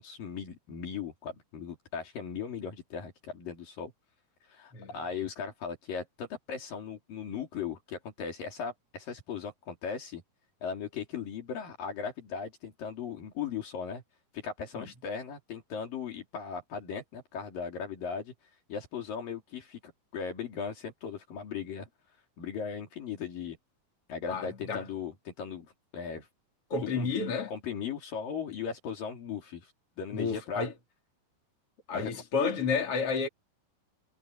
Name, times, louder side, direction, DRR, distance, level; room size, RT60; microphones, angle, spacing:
voice 1, 0.0-3.9 4.5-10.2 10.6-14.0 14.3-18.3 18.7-19.8 20.1-21.9 22.4-23.6 24.1-26.3 27.0-27.1 27.5-30.7 31.9-32.1, left 6 dB, 70° left, 4.7 m, -38 dB
voice 2, 24.3-24.8 26.7-27.5 30.1-30.7 31.9-33.3, left 5 dB, 40° left, 4.5 m, -31 dB
omnidirectional pair, 4.2 m